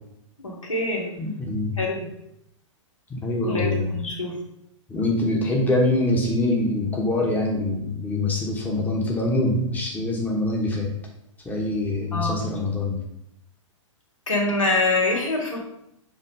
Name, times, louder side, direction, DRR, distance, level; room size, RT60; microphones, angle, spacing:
voice 1, 0.4-1.2 1.8-2.0 3.4-4.3 12.1-12.6 14.3-15.6, left 2 dB, 80° left, -2 dB, 2.3 m, -25 dB
voice 2, 1.2-1.7 3.1-3.9 4.9-10.9 11.4-13.0, left 2 dB, 10° left, -1 dB, 1.2 m, -24 dB
7.5 x 3.0 x 5.3 m, 0.79 s
figure-of-eight pair, 115°, 17 cm